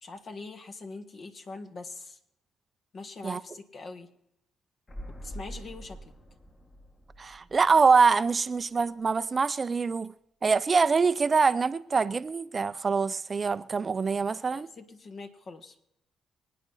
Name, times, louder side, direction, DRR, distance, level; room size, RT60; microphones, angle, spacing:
voice 1, 0.0-2.2 2.9-4.1 5.2-6.0 14.5-15.9, left 3 dB, 50° left, 1.7 m, -43 dB
sound 1, 4.9-8.6 8.9-9.0, equal, 30° left, 2.1 m, -45 dB
voice 2, 7.2-10.1 10.4-14.7, right 5 dB, 35° right, 0.5 m, -24 dB
25.5 x 9.3 x 4.1 m
cardioid pair, 90°, 0 cm